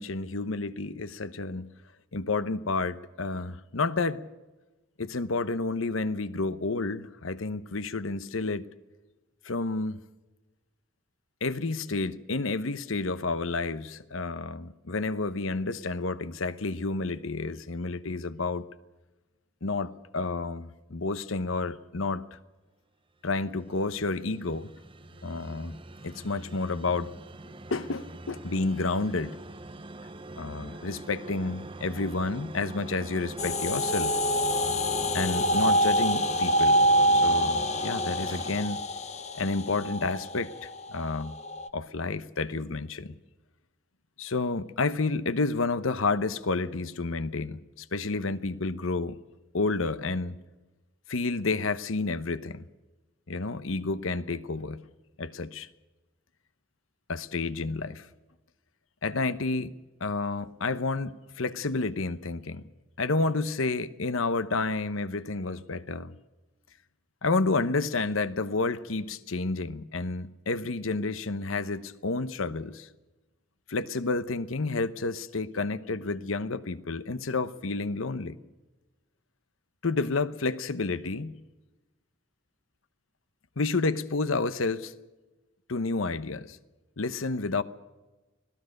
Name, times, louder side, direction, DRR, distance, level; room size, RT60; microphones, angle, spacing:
voice 1, 0.0-1.7 2.1-4.3 5.0-8.7 9.4-10.0 11.4-18.6 19.6-22.4 23.2-24.7 25.2-25.8 26.0-27.1 27.7-29.3 30.4-34.2 35.1-36.8 37.1-38.8 39.3-41.3 41.7-43.1 44.2-49.2 49.5-50.4 51.1-52.6 53.3-54.8 55.2-55.7 57.1-58.1 59.0-59.7 60.0-62.6 63.0-66.1 67.2-72.9 73.7-78.4 79.8-81.3 83.6-84.9 85.7-86.6 87.0-87.6, left 3 dB, 85° left, 1.0 m, -30 dB
sound 1, 23.6-39.7, right 2 dB, 25° right, 0.8 m, -42 dB
sound 2, 33.4-41.7, equal, 35° left, 0.8 m, -26 dB
25.0 x 18.0 x 6.6 m
head